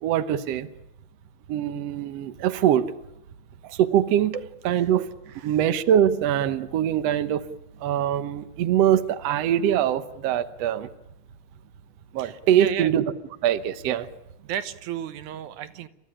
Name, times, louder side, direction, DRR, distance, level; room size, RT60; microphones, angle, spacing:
voice 1, 0.0-0.7 1.5-2.9 3.7-4.3 4.7-5.1 5.4-7.4 7.8-10.9 12.1-13.1 13.4-14.1, right 10 dB, 65° right, 11 dB, 2.0 m, -23 dB
voice 2, 12.2-12.9 14.4-15.9, right 10 dB, 85° right, 12 dB, 2.5 m, -33 dB
30.0 x 14.5 x 10.0 m, 0.85 s
omnidirectional pair, 3.4 m